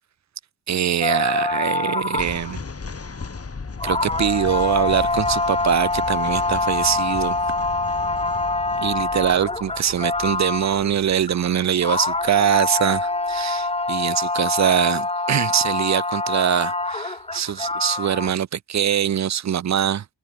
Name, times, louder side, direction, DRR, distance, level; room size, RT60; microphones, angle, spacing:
voice 1, 0.7-2.6 3.8-7.4 8.8-20.0, right 9 dB, 40° right, 0.5 m, -23 dB
sound 1, 1.0-2.6 3.2-3.3 3.8-10.9 11.3-18.3, left 2 dB, 15° left, 1.2 m, -25 dB
sound 2, 2.1-13.4, left 4 dB, 30° left, 5.6 m, -37 dB
open air
wide cardioid pair, 165°, 44 cm